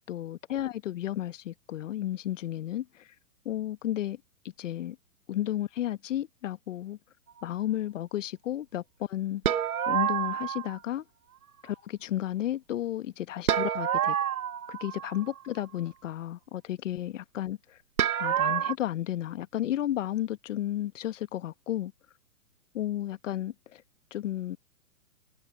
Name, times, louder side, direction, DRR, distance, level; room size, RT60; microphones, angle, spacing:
voice 1, 0.1-3.1 3.4-4.2 4.6-5.0 5.3-7.0 7.4-9.4 9.9-11.0 11.6-14.2 14.7-17.8 18.2-21.9 22.7-23.8 24.1-24.6, left 12 dB, 60° left, 1.3 m, -33 dB
sound 1, 9.4-10.8 13.5-15.4 18.0-18.7, right 9 dB, 75° right, 1.1 m, -28 dB
hypercardioid pair, 125°, 43 cm